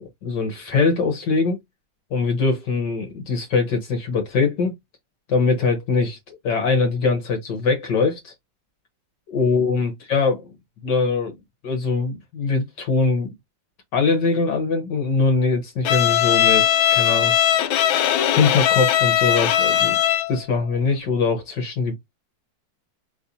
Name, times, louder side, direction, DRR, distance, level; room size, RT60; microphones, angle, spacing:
voice 1, 0.0-1.6 2.1-4.8 5.3-8.3 9.3-10.4 10.8-11.3 11.6-13.3 13.9-17.3 17.8-20.0 20.3-21.9, left 4 dB, 65° left, 1.8 m, -22 dB
Bowed string instrument, 15.8-20.4, left 11 dB, 80° left, 1.4 m, -19 dB
5.4 x 3.3 x 2.7 m
omnidirectional pair, 2.1 m